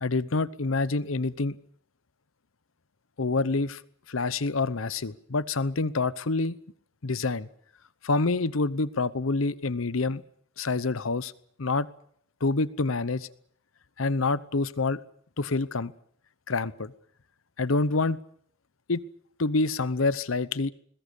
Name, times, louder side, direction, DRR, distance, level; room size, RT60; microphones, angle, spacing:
voice 1, 0.0-1.6 3.2-3.8 4.1-6.5 7.0-7.5 8.0-10.2 10.6-11.3 11.6-11.9 12.4-13.3 14.0-15.0 15.4-15.9 16.5-16.9 17.6-18.2 18.9-19.0 19.4-20.7, left 3 dB, 90° left, 17 dB, 0.9 m, -27 dB
22.0 x 21.0 x 8.5 m, 0.64 s
head